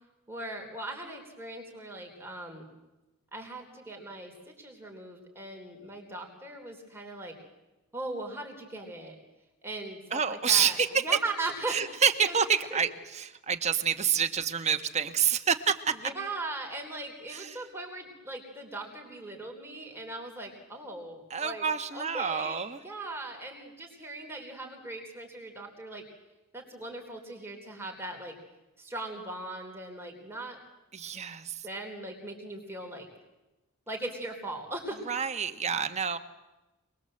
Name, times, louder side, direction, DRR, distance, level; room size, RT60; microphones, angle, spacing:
voice 1, 0.3-2.7 3.3-7.4 7.9-9.2 9.6-12.4 12.7-12.8 16.0-21.7 21.9-26.0 26.5-28.3 28.8-30.6 31.6-33.1 33.9-35.0, right 2 dB, 10° right, 0 dB, 3.8 m, -39 dB
voice 2, 10.1-11.1 11.7-16.0 17.3-17.6 21.3-22.8 30.9-31.7 35.1-36.2, right 7 dB, 30° right, 8 dB, 1.2 m, -28 dB
27.0 x 21.0 x 7.8 m, 1.0 s
head